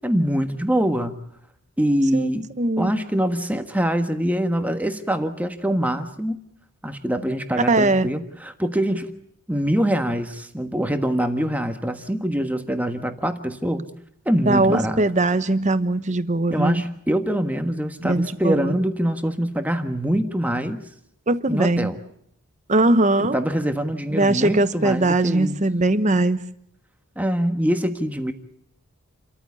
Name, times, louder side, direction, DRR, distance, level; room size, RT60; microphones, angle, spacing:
voice 1, 0.0-1.2 1.8-2.5 2.8-6.4 6.8-9.1 9.5-13.9 14.2-15.0 16.5-20.8 21.5-22.0 23.2-25.6 27.2-28.3, equal, 5° right, 1.4 m, -24 dB
voice 2, 2.6-2.9 7.7-8.1 14.5-16.8 18.0-18.8 21.3-21.9 22.7-23.4 24.1-26.4, right 2 dB, 30° right, 1.0 m, -20 dB
29.0 x 14.0 x 8.6 m
head